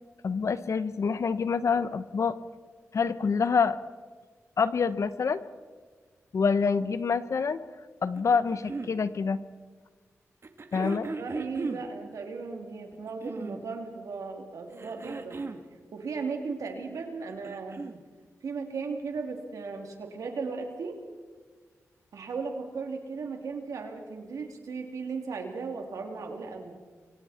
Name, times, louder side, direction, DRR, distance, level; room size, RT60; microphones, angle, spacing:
voice 1, 0.2-2.4 2.9-3.8 4.6-5.4 6.3-7.6 8.0-9.4 10.7-11.1, left 5 dB, 65° left, 13 dB, 1.0 m, -26 dB
sound 1, 8.1-8.9 10.4-11.9 12.9-13.7 14.7-15.7 17.1-18.0 19.2-19.3, right 3 dB, 50° right, 1.9 m, -37 dB
voice 2, 10.8-15.4 15.9-17.8 18.4-21.0 22.1-26.8, right 4 dB, 85° right, 3 dB, 3.1 m, -36 dB
28.5 x 24.5 x 4.4 m, 1.5 s
cardioid pair, 65°, 5 cm